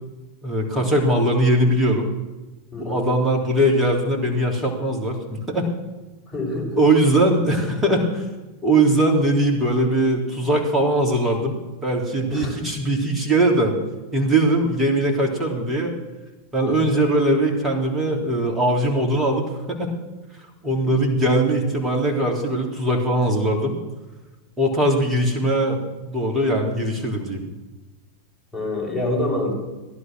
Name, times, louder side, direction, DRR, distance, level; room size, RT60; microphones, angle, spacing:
voice 1, 0.4-2.1 2.8-5.7 6.8-8.2 8.6-13.7 14.1-15.9 16.5-19.9 20.6-23.8 24.6-25.8 26.1-27.4, right 1 dB, 15° right, 1 dB, 3.2 m, -20 dB
voice 2, 2.7-3.1 6.3-6.8 12.3-12.6 16.7-16.8 20.8-21.0 28.5-29.5, left 2 dB, 5° left, -4 dB, 6.6 m, -26 dB
16.5 x 11.5 x 6.2 m, 1.1 s
figure-of-eight pair, 90°, 0 cm